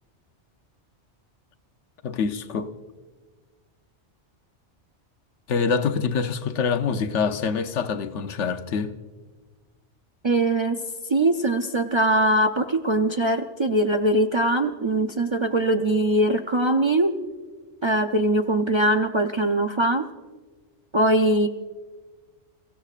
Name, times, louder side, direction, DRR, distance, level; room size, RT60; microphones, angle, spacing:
voice 1, 2.0-2.7 5.5-8.9, left 5 dB, 85° left, 1.1 m, -25 dB
voice 2, 10.2-10.8 11.1-17.2 17.8-20.1 20.9-21.5, right 1 dB, 40° right, 0.4 m, -21 dB
29.0 x 15.5 x 2.4 m
omnidirectional pair, 1.2 m